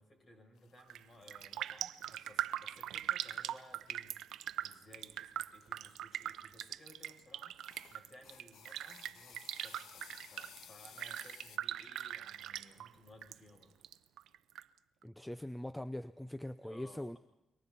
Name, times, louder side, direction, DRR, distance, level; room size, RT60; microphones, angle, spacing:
voice 1, 0.0-4.1 4.6-7.5 7.9-13.8 16.6-17.2, left 1 dB, 35° left, 3 dB, 7.4 m, -59 dB
sound 1, 0.6-7.2 7.6-11.6, left 7 dB, 75° left, 1.5 m, -60 dB
Raindrop, 0.8-1.0 1.3-13.4 13.6-14.6 15.0-15.1, right 12 dB, 80° right, 0.8 m, -41 dB
voice 2, 15.0-17.2, left 1 dB, 5° left, 13 dB, 0.7 m, -42 dB
29.5 x 23.5 x 4.3 m, 0.90 s
cardioid pair, 90°, 0 cm